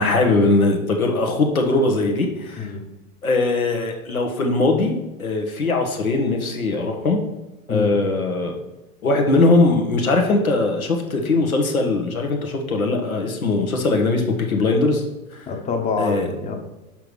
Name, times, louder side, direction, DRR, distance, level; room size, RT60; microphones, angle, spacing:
voice 1, 0.0-2.7 3.2-7.2 7.7-8.6 9.0-15.0 15.3-15.4 16.0-16.3, left 2 dB, 70° left, 3 dB, 1.3 m, -20 dB
voice 2, 15.5-16.6, left 5 dB, 15° left, 4 dB, 1.0 m, -26 dB
6.0 x 5.4 x 4.8 m, 1.1 s
figure-of-eight pair, 90°, 43 cm